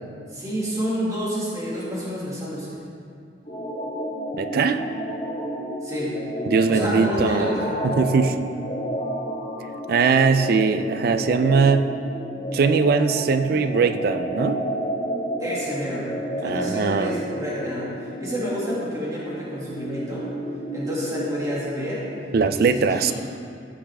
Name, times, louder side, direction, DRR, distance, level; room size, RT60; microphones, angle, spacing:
voice 1, 0.3-2.8 5.8-6.2 6.7-7.8 15.4-16.1 16.4-20.3 20.7-22.1 22.4-23.1, equal, 20° right, -7 dB, 2.1 m, -29 dB
sound 1, 3.5-22.5, right 1 dB, 30° left, 2.2 m, -31 dB
voice 2, 4.4-4.8 6.5-7.5 7.8-8.4 9.9-12.0 12.5-14.6 16.4-17.1 22.3-23.1, right 5 dB, 60° right, 10 dB, 0.4 m, -20 dB
15.0 x 5.5 x 3.4 m, 2.4 s
head